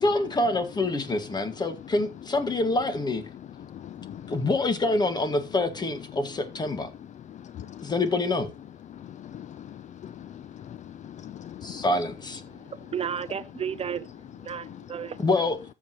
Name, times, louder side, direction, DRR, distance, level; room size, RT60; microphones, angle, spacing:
voice 1, 0.0-3.2 4.3-6.9 7.8-8.5 11.6-12.4 15.2-15.6, left 2 dB, 25° left, 1.7 m, -26 dB
voice 2, 3.6-4.4 7.3-7.9 8.9-11.8 14.6-14.8, left 10 dB, 45° left, 0.5 m, -42 dB
voice 3, 12.5-14.1 14.4-15.2, right 8 dB, 35° right, 0.6 m, -33 dB
13.5 x 7.4 x 3.0 m
cardioid pair, 110°, 17 cm